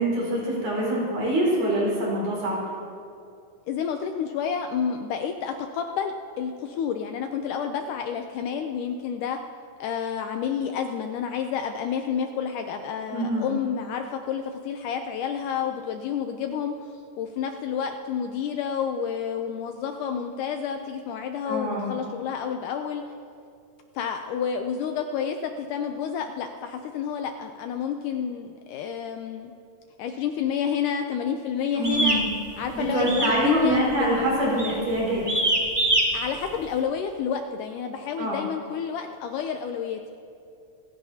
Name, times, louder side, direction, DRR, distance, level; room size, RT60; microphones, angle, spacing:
voice 1, 0.0-2.6 13.1-13.5 21.5-22.0 31.7-32.3 32.7-35.2 38.2-38.4, right 1 dB, 65° right, -4 dB, 6.2 m, -25 dB
voice 2, 3.7-9.4 9.8-16.9 17.2-23.0 24.0-29.5 30.0-32.2 32.6-34.1 36.1-40.2, left 7 dB, 80° left, 5 dB, 1.9 m, -29 dB
sound 1, 31.8-32.2 33.1-33.4 33.7-34.0 34.6-34.8 35.3-36.0, right 1 dB, 35° right, 0.4 m, -23 dB
26.5 x 15.5 x 2.8 m, 2.5 s
omnidirectional pair, 4.1 m